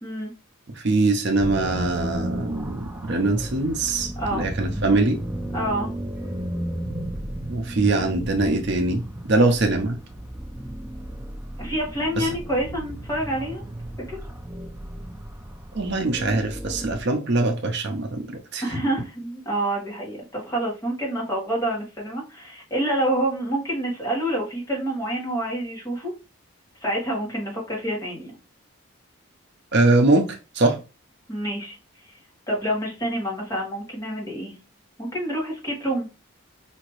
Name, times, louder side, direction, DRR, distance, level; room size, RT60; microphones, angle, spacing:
voice 1, 0.0-0.3 4.2-4.4 5.5-5.9 11.6-13.6 14.1-14.2 18.6-26.1 26.8-28.3 31.3-31.8 32.1-32.2 32.5-34.5 35.0-36.1, right 1 dB, 15° left, -3 dB, 1.5 m, -27 dB
voice 2, 0.8-5.2 7.5-10.0 12.2-12.4 15.7-18.6 29.7-30.8, right 2 dB, 50° right, 5 dB, 0.6 m, -22 dB
sound 1, 1.4-17.0, right 1 dB, 10° right, 0.4 m, -34 dB
5.0 x 2.8 x 3.1 m, 0.29 s
head